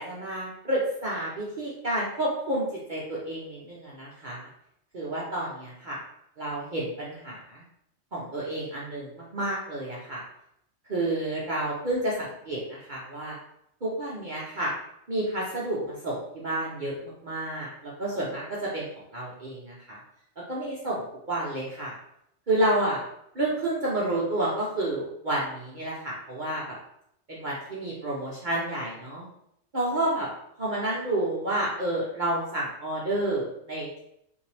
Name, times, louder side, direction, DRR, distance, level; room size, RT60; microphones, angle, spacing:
voice 1, 0.0-4.5 4.9-6.0 6.4-7.6 8.1-10.2 10.9-13.4 13.8-14.7 15.1-18.8 19.1-20.0 20.5-22.0 22.5-23.0 23.3-26.7 27.3-29.3 29.7-30.3 30.6-34.0, right 1 dB, 45° right, -5 dB, 0.9 m, -30 dB
5.3 x 2.7 x 3.3 m, 0.76 s
omnidirectional pair, 1.3 m